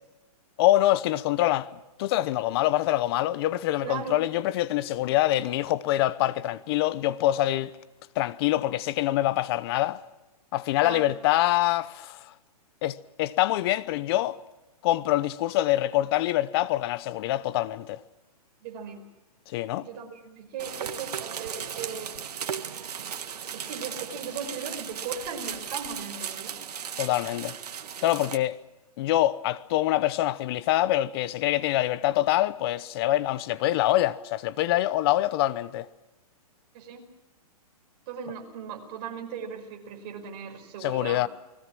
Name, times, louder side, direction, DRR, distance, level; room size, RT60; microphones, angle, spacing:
voice 1, 0.6-1.7 2.0-7.7 8.2-10.0 10.5-12.3 12.8-14.4 14.8-18.0 19.5-19.9 27.0-27.5 28.0-28.6 29.0-35.9 40.8-41.3, left 15 dB, 40° left, 0.9 m, -25 dB
voice 2, 3.8-4.3 10.8-11.2 18.6-19.1 19.8-22.2 23.5-26.6 36.7-37.1 38.1-41.3, right 6 dB, 40° right, 5.2 m, -38 dB
sound 1, 20.6-28.4, right 8 dB, 80° right, 1.8 m, -36 dB
30.0 x 20.0 x 6.3 m
hypercardioid pair, 145°, 20 cm